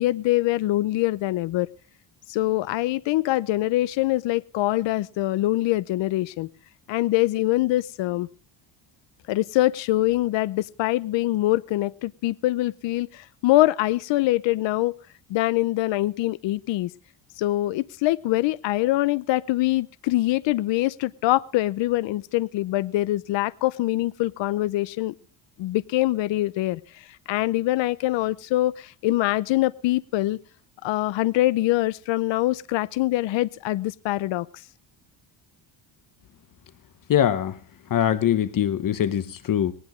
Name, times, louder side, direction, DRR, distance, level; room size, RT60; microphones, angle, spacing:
voice 1, 0.0-1.7 2.3-6.5 6.9-8.3 9.3-14.9 15.3-16.9 17.4-25.1 25.6-30.4 30.8-34.6, left 17 dB, 70° left, 0.7 m, -24 dB
voice 2, 37.1-37.6 37.9-39.7, left 10 dB, 45° left, 1.0 m, -22 dB
19.0 x 19.0 x 3.1 m
cardioid pair, 145°, 46 cm